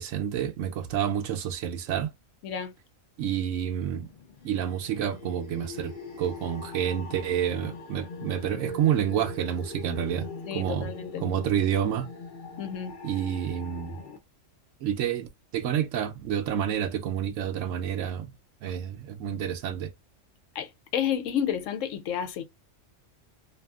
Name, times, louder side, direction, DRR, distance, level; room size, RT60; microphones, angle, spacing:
voice 1, 0.0-2.1 3.2-4.1 4.4-10.9 11.2-12.1 13.0-14.0 14.8-18.3 18.6-19.9, right 9 dB, 75° right, 0.9 m, -29 dB
voice 2, 2.4-2.7 10.5-11.2 12.6-13.0 20.5-22.4, left 9 dB, 75° left, 0.9 m, -31 dB
sound 1, 4.0-14.2, left 3 dB, 55° left, 0.6 m, -42 dB
2.7 x 2.5 x 2.2 m
omnidirectional pair, 1.3 m